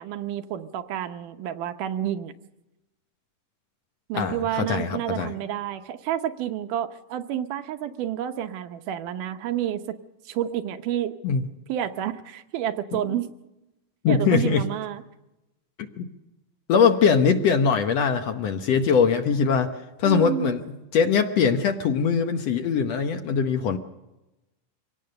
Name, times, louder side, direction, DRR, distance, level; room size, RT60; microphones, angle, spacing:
voice 1, 0.0-2.3 4.1-10.0 10.3-11.2 11.7-13.3 14.1-15.0 20.0-20.6, right 11 dB, 80° right, 8 dB, 2.4 m, -29 dB
voice 2, 4.1-5.3 11.2-11.4 14.0-14.7 16.0-16.1 16.7-19.7 20.0-20.6 20.9-23.8, left 6 dB, 65° left, 6 dB, 1.8 m, -22 dB
24.5 x 17.5 x 6.6 m, 0.98 s
omnidirectional pair, 3.7 m